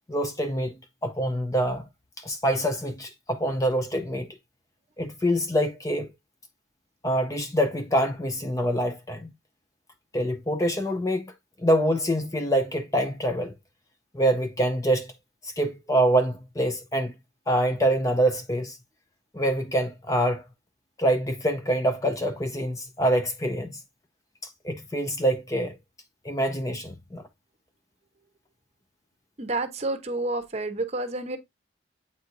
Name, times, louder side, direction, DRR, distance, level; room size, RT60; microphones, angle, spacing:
voice 1, 0.1-0.8 1.0-1.9 2.2-4.3 5.0-6.1 7.0-9.3 10.1-11.3 11.6-13.5 14.1-15.1 15.4-17.1 17.5-18.8 19.3-20.4 21.0-23.8 24.6-25.7 26.2-27.2, right 1 dB, 15° left, 0.5 m, -25 dB
voice 2, 29.4-31.4, right 2 dB, 35° right, 0.8 m, -29 dB
8.3 x 4.5 x 2.5 m
head